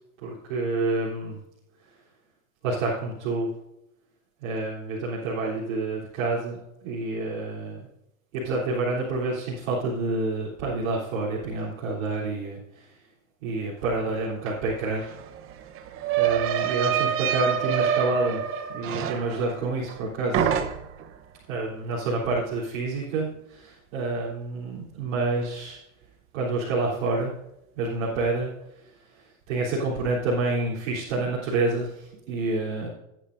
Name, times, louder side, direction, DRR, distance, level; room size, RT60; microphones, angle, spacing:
voice 1, 0.2-1.4 2.6-3.5 4.4-7.9 8.3-12.9 13.4-15.1 16.2-18.4 18.7-20.5 21.5-25.8 26.3-27.3 27.8-28.5 29.1-32.9, right 3 dB, 60° right, -7 dB, 3.6 m, -28 dB
sound 1, 14.5-14.6 14.8-20.0 20.3-21.1, right 9 dB, 30° right, 1.0 m, -27 dB
17.0 x 9.4 x 2.6 m, 0.87 s
hypercardioid pair, 125°, 40 cm